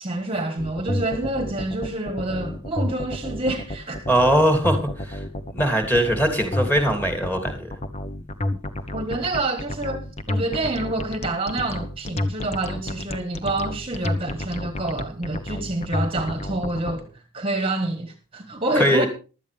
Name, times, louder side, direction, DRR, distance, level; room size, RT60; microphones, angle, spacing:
voice 1, 0.0-4.1 8.9-17.1 17.3-19.1, right 2 dB, 25° right, 1.5 m, -27 dB
sound 1, 0.6-16.9, left 1 dB, 30° left, 1.1 m, -30 dB
voice 2, 4.1-5.2 5.5-7.7 18.7-19.1, equal, 10° left, 2.9 m, -21 dB
16.0 x 12.5 x 3.5 m
head